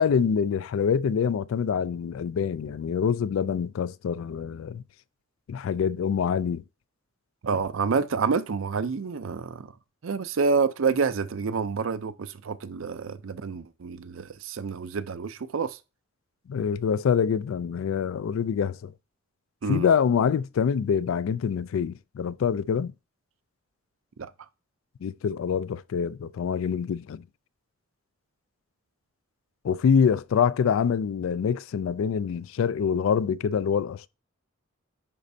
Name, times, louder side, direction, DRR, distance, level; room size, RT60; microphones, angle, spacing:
voice 1, 0.0-4.8 5.5-6.6 16.5-18.9 19.7-22.9 25.0-27.2 29.6-34.1, left 7 dB, 75° left, 0.3 m, -25 dB
voice 2, 7.4-9.7 10.0-15.8 19.6-19.9 24.2-24.3, right 5 dB, 75° right, 0.5 m, -28 dB
10.0 x 4.3 x 2.7 m
head